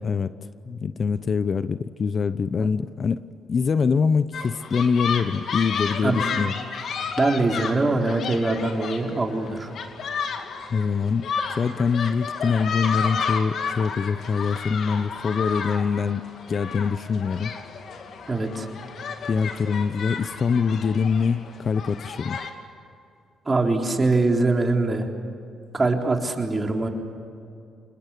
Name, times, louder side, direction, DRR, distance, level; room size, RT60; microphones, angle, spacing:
voice 1, 0.7-3.2 3.5-6.5 10.7-11.3 11.5-17.5 19.3-22.4, left 5 dB, 45° left, 14 dB, 0.8 m, -24 dB
sound 1, 4.3-22.5, left 6 dB, 60° left, 2.6 m, -32 dB
voice 2, 6.0-6.4 7.2-9.7 18.3-18.7 23.5-25.1 25.7-26.9, right 2 dB, 25° right, 2 dB, 3.8 m, -23 dB
27.5 x 21.0 x 8.4 m, 2.5 s
cardioid pair, 90°, 0 cm